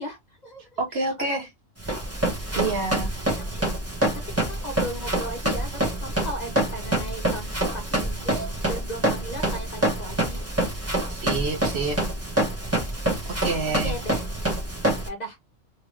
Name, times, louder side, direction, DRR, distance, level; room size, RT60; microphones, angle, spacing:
voice 1, 0.0-0.7 1.0-1.5 2.5-2.7 3.1-3.6 4.1-10.4 13.6-14.2 15.0-15.4, equal, 40° left, 0.9 m, -37 dB
voice 2, 0.8-1.5 2.5-3.1 11.1-12.0 13.2-13.9, right 3 dB, 55° right, 1.3 m, -27 dB
Run, 1.8-15.1, right 1 dB, 10° right, 1.2 m, -26 dB
3.5 x 3.2 x 3.1 m
omnidirectional pair, 1.3 m